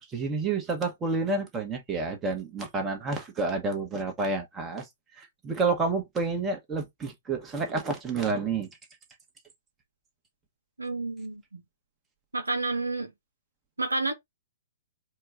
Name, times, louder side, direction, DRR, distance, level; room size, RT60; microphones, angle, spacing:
voice 1, 0.1-4.8 5.2-8.7, right 3 dB, 15° right, 1.2 m, -29 dB
voice 2, 10.8-11.6 12.3-13.1 13.8-14.1, right 3 dB, 80° right, 0.7 m, -30 dB
4.4 x 2.3 x 3.9 m
figure-of-eight pair, 115°, 0 cm